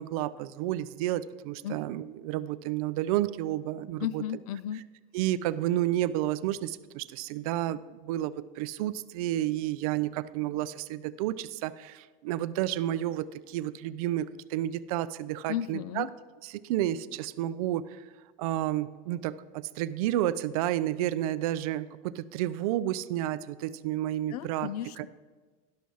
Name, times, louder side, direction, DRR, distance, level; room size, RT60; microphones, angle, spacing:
voice 1, 0.0-4.2 5.1-16.1 16.4-18.0 18.4-24.7 25.0-25.1, right 13 dB, 75° right, 15 dB, 0.5 m, -31 dB
voice 2, 4.0-4.8 15.5-16.1 24.3-25.1, left 11 dB, 85° left, 18 dB, 0.4 m, -34 dB
11.5 x 6.2 x 5.4 m, 1.3 s
supercardioid pair, 130°, 19 cm